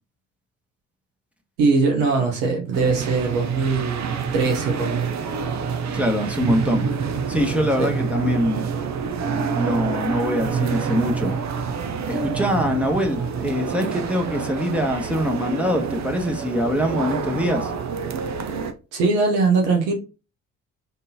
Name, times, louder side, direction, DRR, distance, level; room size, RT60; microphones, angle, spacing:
voice 1, 1.6-5.2 7.8-7.9 18.9-19.9, right 4 dB, 75° right, 1.1 m, -21 dB
sound 1, 2.7-18.7, right 6 dB, 45° right, 0.8 m, -27 dB
voice 2, 5.9-6.9 7.3-8.7 9.6-11.4 12.1-17.7, equal, 5° right, 1.2 m, -23 dB
3.8 x 3.6 x 2.8 m
hypercardioid pair, 50°, 39 cm